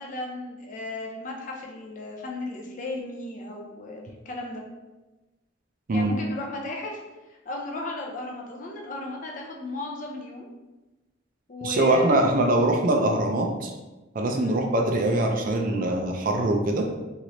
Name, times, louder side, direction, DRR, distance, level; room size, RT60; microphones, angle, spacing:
voice 1, 0.0-4.6 5.9-7.0 7.3-10.5 11.5-12.4 14.3-14.6, left 2 dB, 40° left, -1 dB, 0.5 m, -35 dB
voice 2, 11.6-13.7 14.1-16.8, right 1 dB, 40° right, 2 dB, 0.3 m, -23 dB
3.0 x 3.0 x 2.6 m, 1.1 s
head